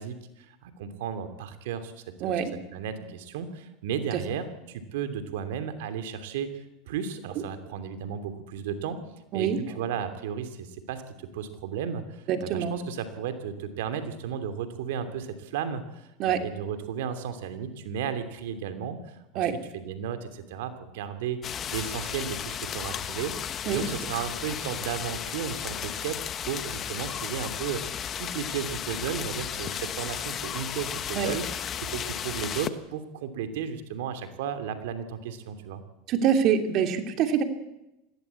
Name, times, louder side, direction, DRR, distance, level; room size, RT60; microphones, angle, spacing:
voice 1, 0.0-2.4 2.7-9.0 9.3-19.5 19.7-21.4 21.7-23.3 23.6-27.8 28.2-31.5 31.8-35.8, right 8 dB, 75° right, 9 dB, 2.9 m, -34 dB
voice 2, 2.2-2.5 4.1-4.3 7.4-7.5 9.3-9.6 12.3-12.8 16.2-16.4 19.3-19.6 23.7-23.8 31.1-31.4 36.1-37.4, right 8 dB, 50° right, 6 dB, 3.0 m, -25 dB
sound 1, 21.4-32.7, left 9 dB, 35° left, 1.4 m, -34 dB
21.0 x 16.5 x 8.4 m, 0.92 s
hypercardioid pair, 105°, 0 cm